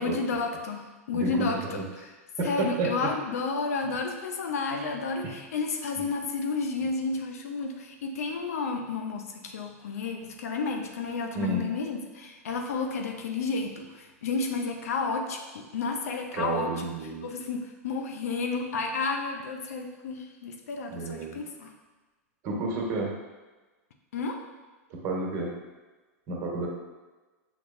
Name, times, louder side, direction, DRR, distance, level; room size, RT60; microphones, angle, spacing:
voice 1, 0.0-2.1 2.4-16.9 17.2-21.7 24.1-24.4, left 4 dB, 75° left, 3 dB, 0.6 m, -31 dB
voice 2, 1.1-1.8 2.4-3.1 4.7-4.8 5.2-5.3 11.3-11.6 16.3-17.3 20.9-21.4 22.4-23.1 24.9-25.5 26.3-26.7, right 3 dB, 45° right, -1 dB, 1.2 m, -31 dB
6.0 x 3.0 x 2.6 m, 1.2 s
hypercardioid pair, 110°, 8 cm